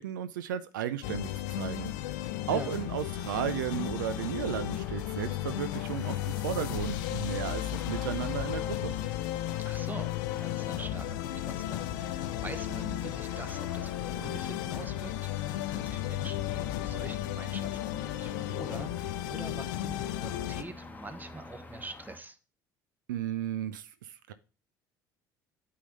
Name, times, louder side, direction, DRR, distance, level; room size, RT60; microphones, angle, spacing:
voice 1, 0.0-1.9 2.5-8.9 23.1-24.3, right 10 dB, 85° right, 0.4 m, -34 dB
sound 1, 1.0-20.6, left 13 dB, 75° left, 0.5 m, -34 dB
sound 2, 2.5-22.2, left 2 dB, 15° left, 1.2 m, -49 dB
voice 2, 2.5-2.8 9.6-22.4, right 2 dB, 15° right, 1.2 m, -45 dB
8.3 x 3.9 x 5.2 m
hypercardioid pair, 65°, 10 cm